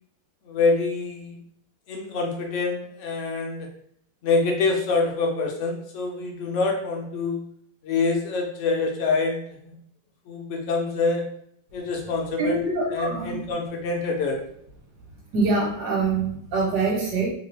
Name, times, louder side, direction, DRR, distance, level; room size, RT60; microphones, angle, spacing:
voice 1, 0.4-1.4 1.9-3.7 4.2-7.4 7.8-9.8 10.3-11.2 11.7-12.6 12.9-14.4, left 3 dB, 80° left, 1 dB, 0.6 m, -26 dB
voice 2, 12.4-13.4 15.3-17.3, right 3 dB, 70° right, -3 dB, 1.3 m, -24 dB
3.0 x 2.2 x 3.2 m, 0.68 s
omnidirectional pair, 1.9 m